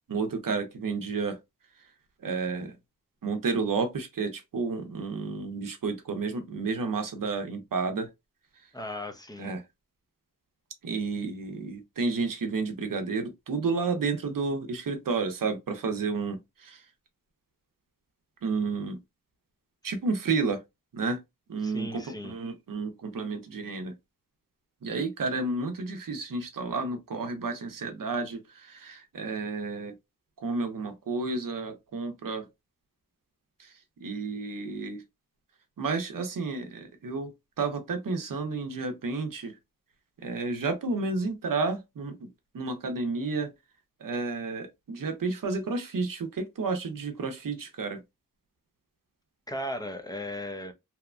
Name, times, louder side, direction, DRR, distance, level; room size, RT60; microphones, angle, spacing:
voice 1, 0.1-1.4 2.2-2.8 3.2-8.1 9.4-9.6 10.8-16.9 18.4-19.0 19.8-20.6 20.9-21.2 21.5-23.9 24.8-30.0 30.4-32.5 33.6-33.7 34.0-35.0 35.8-39.6 40.2-42.3 42.5-43.5 44.0-48.0, right 4 dB, 70° right, 0.7 m, -31 dB
voice 2, 8.7-9.5 21.6-22.3 49.5-50.7, left 1 dB, 10° left, 0.5 m, -36 dB
2.8 x 2.1 x 2.4 m
wide cardioid pair, 60°, 34 cm